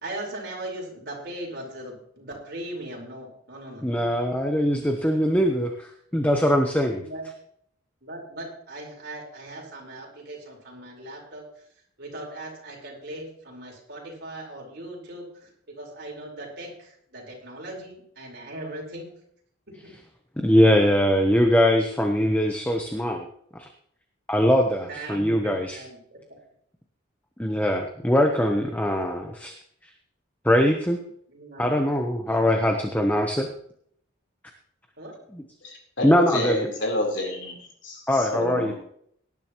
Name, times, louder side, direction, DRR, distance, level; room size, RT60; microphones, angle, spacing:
voice 1, 0.0-4.1 7.0-7.3 8.0-11.5 12.0-19.1 24.9-26.2 28.3-28.8 31.3-31.8 32.2-32.5 35.0-35.1, right 1 dB, 55° right, -1 dB, 4.6 m, -39 dB
voice 2, 3.8-7.0 20.4-23.3 23.5-23.7 24.3-25.8 27.4-29.5 30.4-31.0 31.6-33.5 36.0-36.7 38.1-38.7, equal, 10° left, 3 dB, 0.9 m, -22 dB
voice 3, 35.6-37.6 37.8-38.7, left 1 dB, 65° left, 0 dB, 3.9 m, -29 dB
18.5 x 10.5 x 3.1 m, 0.67 s
head